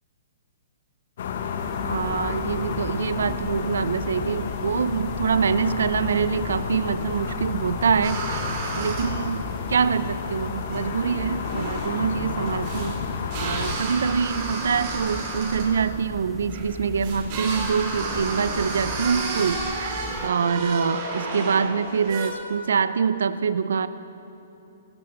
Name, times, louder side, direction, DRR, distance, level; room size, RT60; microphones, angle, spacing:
sound 1, 1.2-13.8, left 6 dB, 60° left, 1.2 m, -31 dB
sound 2, 1.6-20.3, left 4 dB, 15° left, 0.6 m, -40 dB
voice 1, 1.9-8.4 8.8-13.0 13.4-23.9, right 6 dB, 75° right, 14 dB, 0.6 m, -25 dB
sound 3, 8.0-22.3, right 3 dB, 45° right, 3.0 m, -33 dB
20.5 x 13.0 x 4.0 m, 2.9 s
hypercardioid pair, 130°, 0 cm